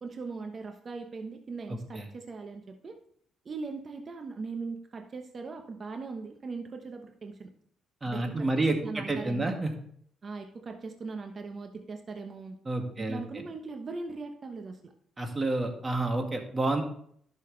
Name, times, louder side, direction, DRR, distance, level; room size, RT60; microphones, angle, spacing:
voice 1, 0.0-3.0 3.4-7.5 8.0-9.6 10.2-12.6 13.0-14.9, right 4 dB, 45° right, 5 dB, 1.1 m, -40 dB
voice 2, 8.0-9.7 12.7-13.4 15.2-16.8, right 2 dB, 30° right, 4 dB, 2.0 m, -29 dB
11.5 x 6.4 x 3.3 m, 0.64 s
supercardioid pair, 55°, 0 cm